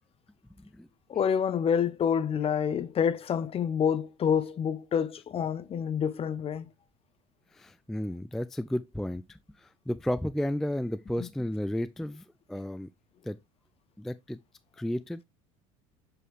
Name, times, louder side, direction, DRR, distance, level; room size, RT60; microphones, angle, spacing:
voice 1, 1.1-6.7 11.2-11.3, left 7 dB, 35° left, 0.7 m, -28 dB
voice 2, 7.5-12.2 12.5-12.9 13.2-13.4 14.0-14.4 14.8-15.2, left 1 dB, ahead, 0.3 m, -33 dB
7.7 x 4.6 x 3.2 m
hypercardioid pair, 80°, 18 cm